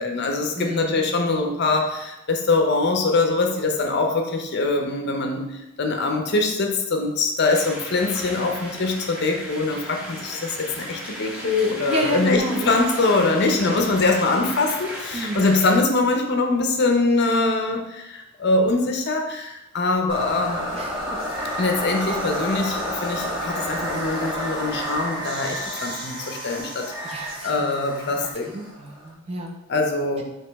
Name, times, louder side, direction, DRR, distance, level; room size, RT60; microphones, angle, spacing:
voice 1, 0.0-20.7 21.6-28.6 29.7-30.2, left 3 dB, 50° left, 3 dB, 0.6 m, -23 dB
voice 2, 0.5-1.2 11.9-12.7 13.4-13.8 15.1-15.5 20.7-21.2 27.0-28.1 28.5-29.6, right 1 dB, 30° right, 1 dB, 0.6 m, -31 dB
sound 1, 7.4-15.7, equal, 5° right, 0.9 m, -36 dB
sound 2, 20.1-29.1, equal, 45° right, 1.6 m, -30 dB
4.8 x 2.9 x 3.4 m, 0.91 s
head